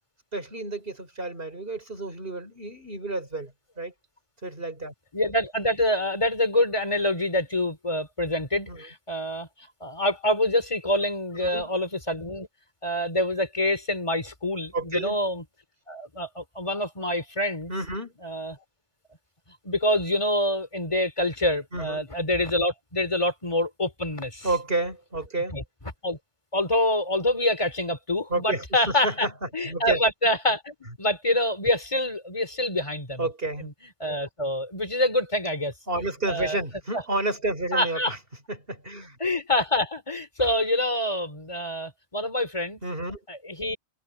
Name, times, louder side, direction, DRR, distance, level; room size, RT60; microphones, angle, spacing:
voice 1, 0.3-3.9 4.4-4.9 8.7-8.9 11.4-11.7 14.7-15.2 17.7-18.2 21.7-22.1 24.4-25.6 28.3-30.0 33.2-33.7 35.9-38.2 38.5-39.2 42.8-43.2, right 2 dB, 45° right, 4.6 m, -30 dB
voice 2, 5.1-9.5 9.8-12.5 12.8-15.4 15.9-17.7 18.2-18.6 19.6-24.5 25.5-25.6 26.0-26.2 26.5-29.3 29.5-33.2 33.6-33.7 34.0-35.7 36.3-36.6 36.9-37.0 37.7-38.1 39.2-42.8 43.3-43.8, left 1 dB, 25° left, 2.8 m, -26 dB
open air
omnidirectional pair, 1.3 m